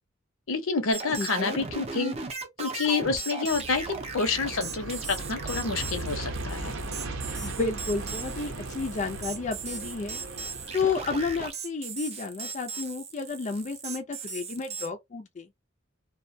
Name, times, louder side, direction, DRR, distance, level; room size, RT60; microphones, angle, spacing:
voice 1, 0.5-2.1 2.6-6.8, left 4 dB, 70° left, 0.7 m, -28 dB
sound 1, 0.9-14.9, right 4 dB, 30° right, 0.5 m, -37 dB
voice 2, 1.2-1.6 7.4-10.2 10.7-15.5, left 4 dB, 35° left, 0.4 m, -31 dB
Aircraft, 3.5-11.5, right 2 dB, 65° right, 0.6 m, -37 dB
2.3 x 2.1 x 2.6 m
head